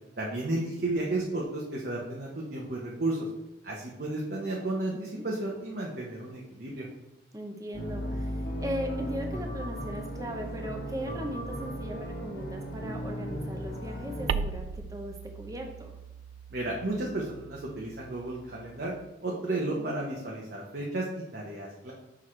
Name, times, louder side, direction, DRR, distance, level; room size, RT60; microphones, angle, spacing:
voice 1, 0.2-3.3 3.6-6.9 16.5-18.9 19.2-21.9, right 2 dB, 55° right, -3 dB, 0.9 m, -33 dB
voice 2, 7.3-15.9 19.8-20.0, equal, 20° right, 3 dB, 0.6 m, -38 dB
sound 1, 7.7-14.3, equal, 45° left, 1.1 m, -36 dB
sound 2, 14.3-19.1, right 6 dB, 80° right, 0.3 m, -38 dB
6.2 x 5.8 x 3.2 m, 0.97 s
head